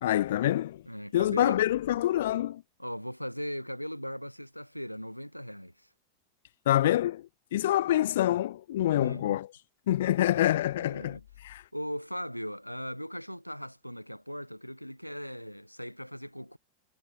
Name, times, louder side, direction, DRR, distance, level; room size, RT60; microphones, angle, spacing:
voice 1, 0.0-0.8 1.1-2.6 6.7-7.2 7.5-9.5 9.9-11.2 11.4-11.6, left 13 dB, 60° left, 0.6 m, -26 dB
voice 2, 0.9-1.6 2.8-5.9 9.0-9.4 10.3-11.2 11.7-16.6, equal, 90° left, 1.2 m, -38 dB
figure-of-eight pair, 90°, 0 cm